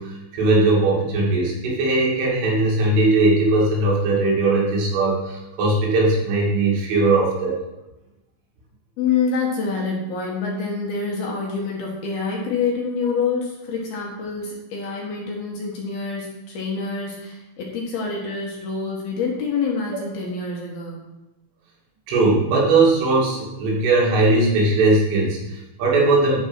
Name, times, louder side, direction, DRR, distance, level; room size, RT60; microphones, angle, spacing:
voice 1, 0.0-7.6 22.1-26.4, right 2 dB, 80° right, -4 dB, 5.0 m, -19 dB
voice 2, 9.0-21.1, left 5 dB, 65° left, -2 dB, 2.9 m, -26 dB
12.0 x 5.4 x 6.2 m, 0.99 s
omnidirectional pair, 5.6 m